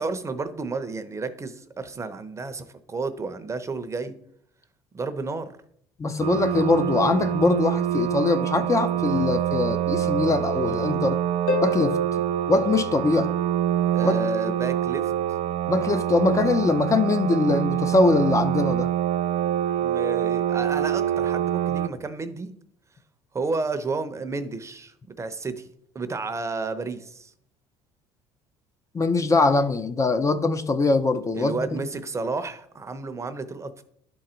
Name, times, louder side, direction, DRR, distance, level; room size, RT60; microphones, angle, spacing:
voice 1, 0.0-4.1 4.9-5.6 13.9-15.1 19.8-22.5 23.3-25.7 25.9-27.3 31.3-33.8, right 3 dB, 25° right, 0.7 m, -31 dB
voice 2, 6.0-11.2 11.6-12.0 12.5-13.3 14.0-14.2 15.7-18.9 28.9-31.6, left 3 dB, 25° left, 0.6 m, -22 dB
sound 1, 6.2-21.9, right 11 dB, 55° right, 0.4 m, -25 dB
Harp, 11.5-14.0 17.5-17.6, left 2 dB, 85° left, 1.2 m, -31 dB
11.0 x 3.9 x 4.4 m
supercardioid pair, 100°, 13 cm